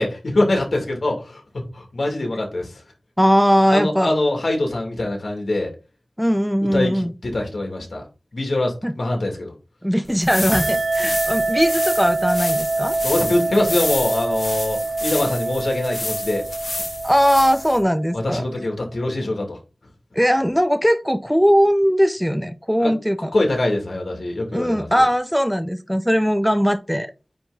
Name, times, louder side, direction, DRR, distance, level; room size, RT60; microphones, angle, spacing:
voice 1, 0.0-1.4 1.7-2.7 3.7-5.7 6.7-8.0 8.3-9.5 13.0-16.4 18.1-19.6 22.8-22.9 23.3-25.1, left 2 dB, 80° left, 2.4 m, -23 dB
voice 2, 3.2-4.1 6.2-7.1 8.8-8.9 9.8-13.0 17.0-18.4 20.1-23.3 24.5-27.1, equal, ahead, 0.6 m, -19 dB
sound 1, 10.1-17.8, left 2 dB, 55° left, 1.4 m, -30 dB
sound 2, 10.5-18.6, right 3 dB, 75° right, 1.5 m, -25 dB
9.1 x 3.5 x 4.0 m
wide cardioid pair, 60°, 0 cm